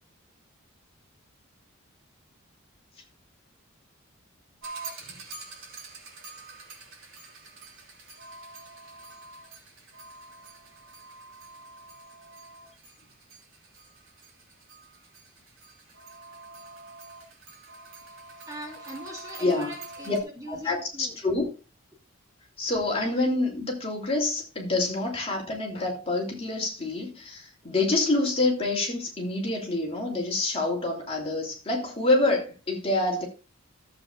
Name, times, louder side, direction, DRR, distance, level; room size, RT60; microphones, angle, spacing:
sound 1, 4.6-20.2, right 3 dB, 75° right, 3.2 m, -46 dB
voice 1, 18.5-21.2, equal, 15° right, 2.2 m, -41 dB
voice 2, 19.4-19.7 20.0-20.2 20.5-21.5 22.6-33.3, left 2 dB, 25° left, 2.8 m, -27 dB
14.5 x 8.0 x 2.4 m
head